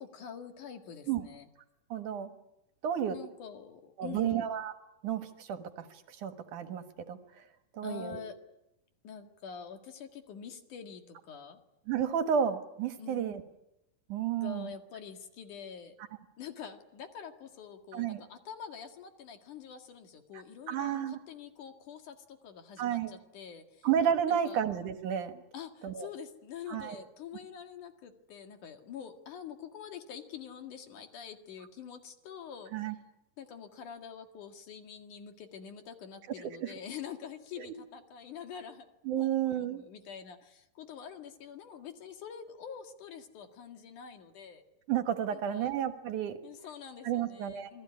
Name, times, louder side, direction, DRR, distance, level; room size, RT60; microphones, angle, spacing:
voice 1, 0.0-1.5 3.1-4.5 7.8-8.4 9.0-11.6 13.0-13.4 14.4-15.9 16.4-23.9 24.3-24.6 25.5-32.7 33.4-38.9 39.2-44.6 45.3-45.7 46.4-47.8, left 7 dB, 65° left, 6 dB, 3.3 m, -46 dB
voice 2, 1.9-2.3 2.8-3.2 4.0-4.7 5.0-7.2 7.7-8.2 11.9-13.4 14.1-14.7 17.9-18.2 20.7-21.2 22.8-23.1 23.8-25.4 25.8-26.1 26.7-27.0 32.7-32.9 36.4-36.7 37.6-37.7 39.1-39.8 44.9-46.4 47.0-47.7, right 9 dB, 65° right, 8 dB, 2.7 m, -31 dB
28.0 x 20.0 x 9.7 m, 0.89 s
omnidirectional pair, 4.0 m